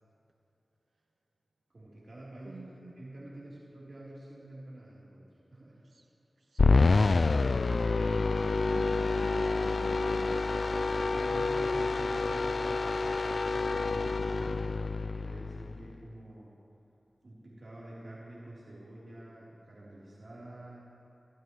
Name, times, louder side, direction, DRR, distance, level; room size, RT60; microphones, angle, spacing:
voice 1, 1.7-2.7 3.0-5.8 11.0-12.9 13.2-16.5 17.2-20.8, right 1 dB, 60° right, -8 dB, 3.6 m, -47 dB
voice 2, 2.4-2.9 5.8-6.0 6.5-10.9, right 3 dB, 80° right, 1 dB, 1.5 m, -48 dB
sound 1, 6.6-16.0, left 3 dB, 65° left, 0.3 m, -28 dB
26.5 x 16.5 x 3.2 m, 2.8 s
wide cardioid pair, 55°, 0 cm